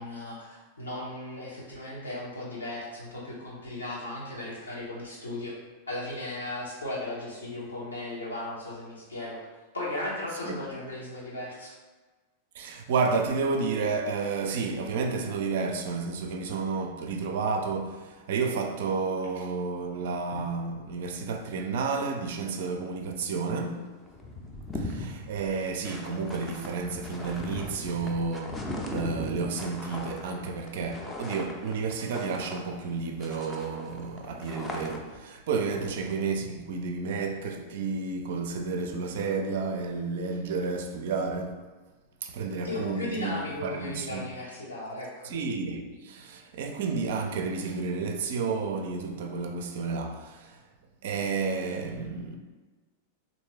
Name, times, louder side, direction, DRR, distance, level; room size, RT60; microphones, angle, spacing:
voice 1, 0.0-5.6 5.9-9.4 9.7-11.7 35.7-35.9 42.6-45.3, left 1 dB, 75° left, 1.1 m, -36 dB
voice 2, 12.5-23.9 24.8-41.6 42.2-44.3 45.2-50.6 51.0-52.4, right 4 dB, 55° right, 0.4 m, -31 dB
sound 1, 23.7-23.8 24.0-32.9 33.2-35.2, left 1 dB, 15° left, 0.5 m, -39 dB
3.5 x 2.6 x 3.2 m
figure-of-eight pair, 90°, 0 cm